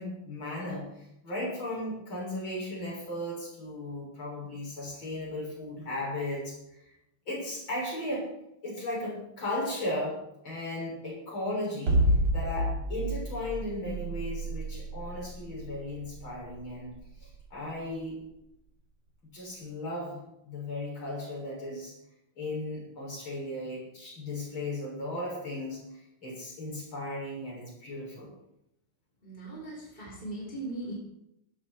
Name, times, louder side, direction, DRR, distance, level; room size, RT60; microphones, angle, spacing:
voice 1, 0.0-6.9 7.3-8.3 8.6-10.2 10.4-12.0 12.3-16.9 17.2-18.2 19.3-21.9 22.4-28.3, left 1 dB, 70° left, -4 dB, 7.4 m, -36 dB
sound 1, 11.9-18.0, right 1 dB, 80° right, 3.6 m, -30 dB
voice 2, 29.2-30.9, right 2 dB, 25° left, -2 dB, 4.7 m, -39 dB
15.5 x 13.0 x 4.6 m, 0.82 s
omnidirectional pair, 2.3 m